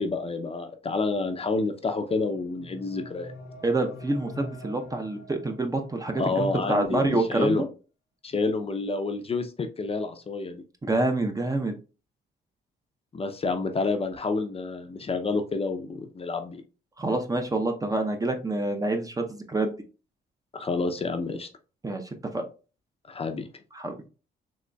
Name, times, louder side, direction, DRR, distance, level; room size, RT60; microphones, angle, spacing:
voice 1, 0.0-3.3 6.2-7.7 8.2-10.6 13.1-16.6 20.5-21.5 23.1-23.5, left 3 dB, 30° left, 6 dB, 0.5 m, -29 dB
sound 1, 2.2-6.2, equal, 65° left, 0.8 m, -43 dB
voice 2, 3.6-7.7 10.8-11.7 17.0-19.7 21.8-22.0 22.3-22.4 23.7-23.9, right 2 dB, 20° right, 5 dB, 0.6 m, -27 dB
3.9 x 2.9 x 2.2 m, 0.33 s
cardioid pair, 90°, 20 cm